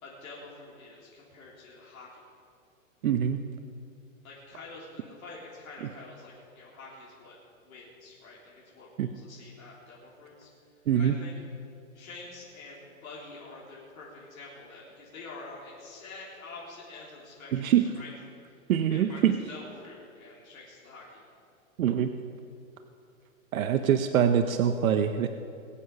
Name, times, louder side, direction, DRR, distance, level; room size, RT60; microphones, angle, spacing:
voice 1, 0.0-2.1 4.2-7.4 7.6-10.5 10.9-11.3 11.9-18.1 18.9-21.2, left 3 dB, 85° left, -5 dB, 3.8 m, -47 dB
voice 2, 3.0-3.4 9.0-9.1 10.9-11.2 17.5-17.9 18.7-19.4 21.8-22.1 23.5-25.3, right 9 dB, 80° right, 8 dB, 0.9 m, -24 dB
21.0 x 8.6 x 5.6 m, 2.5 s
hypercardioid pair, 170°, 41 cm